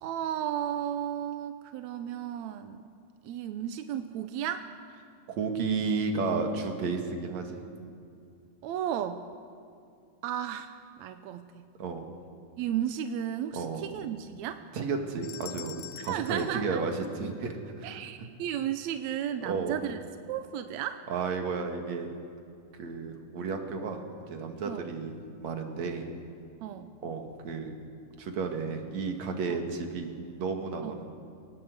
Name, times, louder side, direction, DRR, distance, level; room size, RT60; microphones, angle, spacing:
voice 1, 0.0-2.9 3.2-4.7 8.6-9.2 10.2-11.7 12.6-14.6 16.1-16.8 17.8-20.0 20.3-21.0 24.7-24.9 26.6-26.9 29.5-29.6 30.8-30.9, right 10 dB, 75° right, 9 dB, 1.8 m, -34 dB
voice 2, 5.3-7.6 11.8-12.1 13.5-13.8 14.7-18.0 19.4-19.8 21.1-22.1 22.8-26.1 27.0-27.8 28.2-31.1, right 4 dB, 60° right, 4 dB, 2.9 m, -32 dB
sound 1, 15.2-17.6, left 13 dB, 75° left, 2.2 m, -46 dB
24.0 x 19.0 x 8.0 m, 2.4 s
omnidirectional pair, 3.8 m